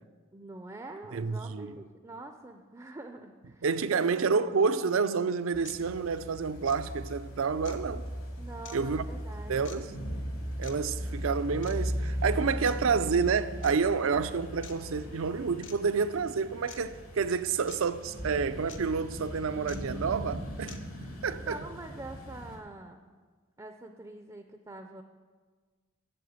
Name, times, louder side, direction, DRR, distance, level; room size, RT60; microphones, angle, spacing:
voice 1, 0.3-3.6 3.9-4.8 8.4-9.8 21.4-23.0 23.6-25.0, right 2 dB, 15° right, 0.4 m, -45 dB
voice 2, 1.1-1.8 3.6-8.0 8.7-9.0 9.5-9.9 10.6-20.8 21.2-21.6, right 5 dB, 75° right, 0.5 m, -29 dB
sound 1, 4.9-5.0 5.6-5.8 6.6-6.8 7.6-7.8 8.6-8.8 9.6-9.8 10.6-10.7 11.6-11.8 12.6-12.7 13.6-13.7 14.6-14.8 15.6-15.8 16.7-16.8 17.7-17.8 18.7-18.8 19.7-19.8 20.7-20.8, left 7 dB, 60° left, 0.8 m, -47 dB
sound 2, 5.5-22.6, equal, 85° left, 2.4 m, -38 dB
7.8 x 7.6 x 8.0 m
head